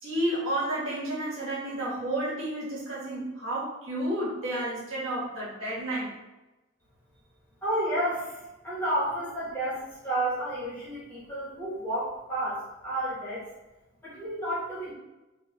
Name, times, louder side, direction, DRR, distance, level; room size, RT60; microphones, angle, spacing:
voice 1, 0.0-6.1, right 1 dB, 75° right, -8 dB, 1.4 m, -31 dB
voice 2, 7.6-8.4 8.6-13.5 14.0-14.9, right 1 dB, 10° left, -9 dB, 1.0 m, -31 dB
4.3 x 2.3 x 2.3 m, 1.0 s
head